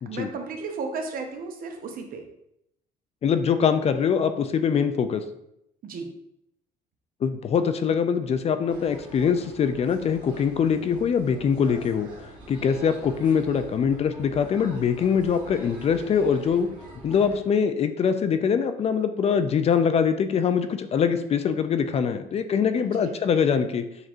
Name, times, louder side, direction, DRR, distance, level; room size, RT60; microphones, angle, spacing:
voice 1, 0.1-2.2 5.8-6.1 22.7-23.2, right 4 dB, 60° right, 4 dB, 0.8 m, -34 dB
voice 2, 3.2-5.2 7.2-16.7 17.0-23.9, left 7 dB, 40° left, 9 dB, 0.4 m, -23 dB
sound 1, 8.7-17.4, right 1 dB, 25° right, 1.3 m, -45 dB
6.6 x 3.0 x 2.5 m, 0.79 s
cardioid pair, 110°, 17 cm